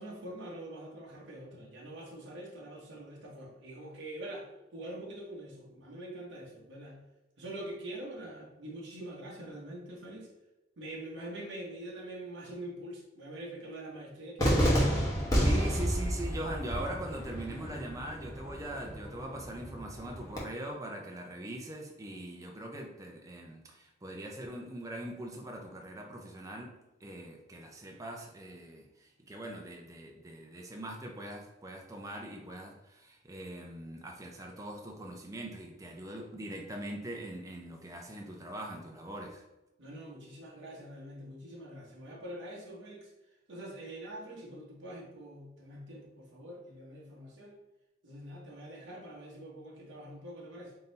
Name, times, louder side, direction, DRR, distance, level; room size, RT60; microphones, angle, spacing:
voice 1, 0.0-7.0 7.4-10.3 10.8-15.1 39.8-43.1 43.5-47.6 48.0-50.7, right 1 dB, 70° right, -3 dB, 0.9 m, -44 dB
Cheering / Fireworks, 14.4-20.4, equal, 15° left, 0.9 m, -30 dB
voice 2, 15.4-39.4, right 1 dB, 15° right, 1 dB, 0.5 m, -42 dB
3.8 x 2.7 x 3.9 m, 0.96 s
head